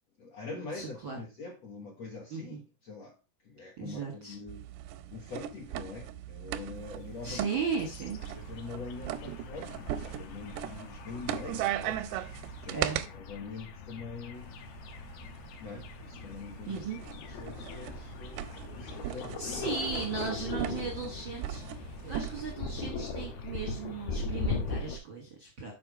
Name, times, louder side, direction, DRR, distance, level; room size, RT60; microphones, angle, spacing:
voice 1, 0.2-3.1 3.4-4.7 5.1-7.4 7.7-7.8 8.3-12.4 12.6-12.9 13.1-14.5 15.6-19.6 20.2-20.4, left 4 dB, 55° left, -3 dB, 1.9 m, -44 dB
voice 2, 0.7-1.2 2.3-2.6 3.8-4.3 7.2-8.2 12.7-13.0 16.7-17.0 19.0-25.7, right 5 dB, 60° right, -1 dB, 1.3 m, -36 dB
sound 1, 4.5-13.1 14.3-22.5, right 12 dB, 85° right, 2.7 m, -39 dB
sound 2, 7.2-25.0, left 4 dB, 75° left, 2.6 m, -40 dB
7.1 x 5.1 x 4.9 m, 0.30 s
omnidirectional pair, 4.7 m